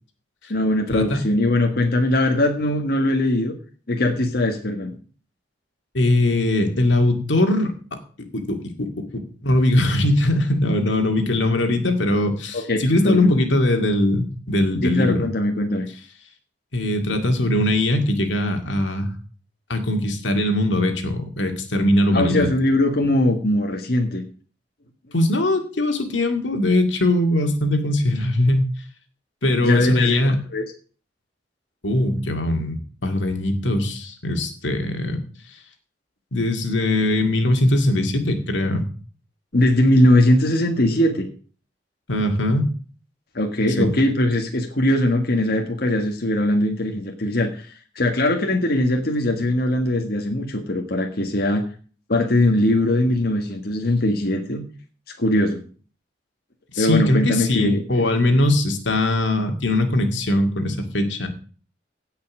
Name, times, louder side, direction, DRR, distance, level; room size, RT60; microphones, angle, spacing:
voice 1, 0.5-3.5 3.9-5.0 12.5-13.3 14.8-15.9 22.1-24.2 29.6-30.2 30.5-30.6 39.5-41.3 43.3-51.6 52.1-54.6 55.2-55.6 56.8-58.0, left 1 dB, 60° left, 3 dB, 1.7 m, -20 dB
voice 2, 5.9-8.0 8.3-9.1 9.4-15.3 16.7-19.1 19.7-22.5 25.1-28.7 29.4-30.4 31.8-35.2 36.3-38.8 42.1-42.7 43.8-43.9 56.7-61.3, left 1 dB, 90° left, 5 dB, 2.2 m, -21 dB
16.5 x 5.7 x 6.2 m, 0.40 s
head